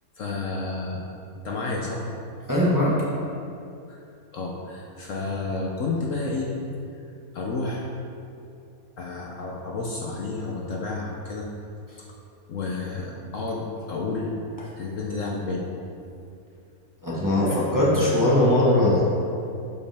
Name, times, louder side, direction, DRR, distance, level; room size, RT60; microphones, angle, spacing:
voice 1, 0.2-1.0 1.4-2.1 3.9-4.0 4.3-6.6 7.3-7.9 9.0-11.5 12.5-14.3 14.7-15.7, left 3 dB, 60° left, -2 dB, 1.0 m, -30 dB
voice 2, 2.5-3.0 17.0-19.1, left 1 dB, 15° right, -7 dB, 1.2 m, -20 dB
11.0 x 5.2 x 3.5 m, 2.6 s
omnidirectional pair, 1.7 m